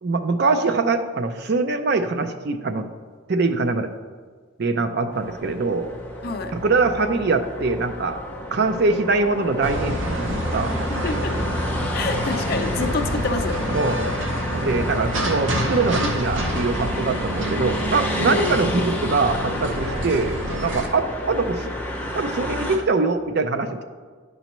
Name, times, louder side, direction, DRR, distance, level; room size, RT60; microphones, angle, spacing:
voice 1, 0.0-2.9 3.3-3.9 4.6-5.9 6.5-8.2 8.5-10.8 13.7-14.0 14.5-21.7 22.1-23.8, right 3 dB, 50° right, 7 dB, 0.5 m, -23 dB
sound 1, 5.1-22.8, equal, 10° left, 0.6 m, -31 dB
sound 2, 9.6-20.9, equal, 70° right, 0.8 m, -27 dB
voice 2, 10.9-11.4 11.9-13.7 18.2-18.6, left 3 dB, 45° left, 6 dB, 0.5 m, -27 dB
10.0 x 5.4 x 3.0 m, 1.5 s
head